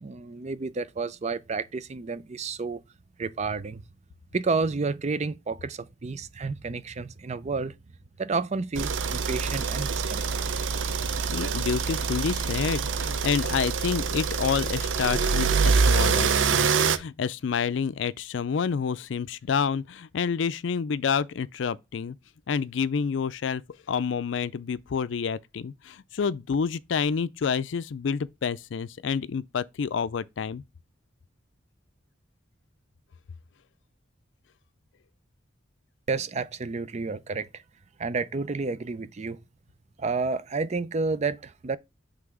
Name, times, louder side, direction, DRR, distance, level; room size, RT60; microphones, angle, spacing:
voice 1, 0.0-2.8 3.2-3.8 4.3-7.7 8.2-10.4 36.1-37.6 38.0-39.4 40.0-41.8, right 4 dB, 35° right, 0.5 m, -30 dB
sound 1, 8.7-17.0, right 5 dB, 85° right, 0.6 m, -25 dB
voice 2, 11.3-22.2 22.5-23.6 23.9-30.6, left 6 dB, 75° left, 0.4 m, -28 dB
5.8 x 3.4 x 4.8 m
head